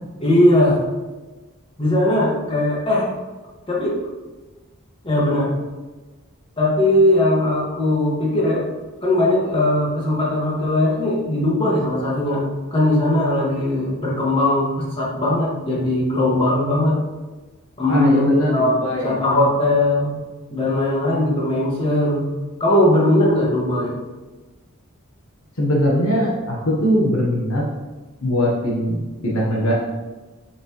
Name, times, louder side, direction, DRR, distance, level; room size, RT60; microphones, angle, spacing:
voice 1, 0.2-0.8 1.8-3.1 3.7-4.0 5.0-5.5 6.6-8.6 9.0-17.0 17.8-20.2 20.5-22.3 22.6-24.0, left 1 dB, 25° left, -6 dB, 2.1 m, -19 dB
voice 2, 17.9-19.2 25.6-27.6 28.2-29.7, equal, 70° left, -3 dB, 1.3 m, -21 dB
7.1 x 6.1 x 3.2 m, 1.2 s
head